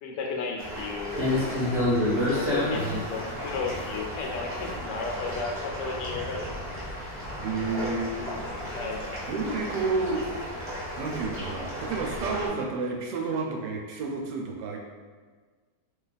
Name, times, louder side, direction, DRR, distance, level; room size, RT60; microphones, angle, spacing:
voice 1, 0.0-1.2 2.3-6.6 8.7-9.0, left 4 dB, 85° left, 1 dB, 1.2 m, -34 dB
sound 1, 0.6-12.5, left 1 dB, 15° right, 0.5 m, -31 dB
voice 2, 3.3-3.6 7.4-8.2 8.5-8.7 9.3-10.2 10.9-14.8, right 4 dB, 80° right, 1 dB, 1.2 m, -31 dB
2.9 x 2.3 x 3.9 m, 1.5 s
omnidirectional pair, 1.8 m